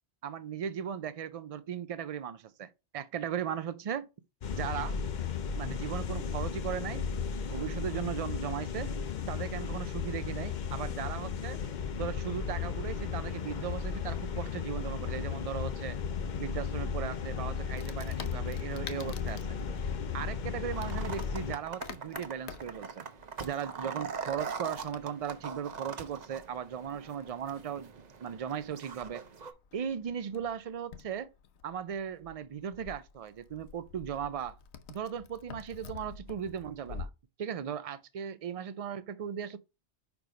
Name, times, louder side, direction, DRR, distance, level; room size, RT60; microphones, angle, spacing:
voice 1, 0.2-4.1 4.6-5.0 5.6-7.0 7.5-8.9 9.3-11.6 12.0-16.0 16.4-19.5 20.1-23.1 23.4-27.9 28.2-29.2 29.7-31.3 31.6-34.6 34.9-37.1 37.4-39.6, right 8 dB, 60° right, 0.3 m, -37 dB
sound 1, 4.4-21.5, left 6 dB, 50° left, 0.6 m, -35 dB
Wood, 17.7-37.1, left 6 dB, 70° left, 1.0 m, -50 dB
sound 2, 20.7-29.5, right 5 dB, 45° right, 0.7 m, -42 dB
5.2 x 4.6 x 5.0 m
omnidirectional pair, 1.2 m